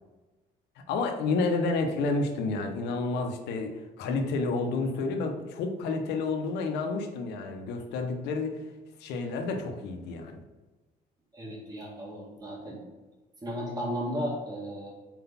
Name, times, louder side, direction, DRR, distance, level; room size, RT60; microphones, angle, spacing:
voice 1, 0.9-8.6 9.0-10.4, left 3 dB, 85° left, 5 dB, 0.9 m, -30 dB
voice 2, 11.3-12.8 13.4-14.9, equal, 20° right, -4 dB, 1.8 m, -34 dB
4.5 x 4.0 x 5.6 m, 1.2 s
cardioid pair, 110°, 17 cm